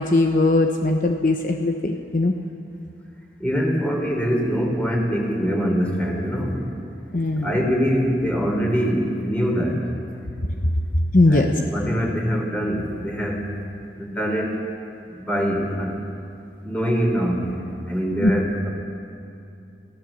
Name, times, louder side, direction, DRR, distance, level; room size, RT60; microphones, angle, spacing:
voice 1, 0.0-2.3 7.1-7.5 11.1-11.5 18.2-18.3, left 2 dB, 50° left, 4 dB, 0.9 m, -19 dB
voice 2, 3.4-6.7 7.4-9.8 11.3-13.5 14.0-14.6 15.1-16.0 16.6-18.7, equal, 10° left, 1 dB, 3.4 m, -24 dB
28.0 x 15.5 x 7.3 m, 2.7 s
head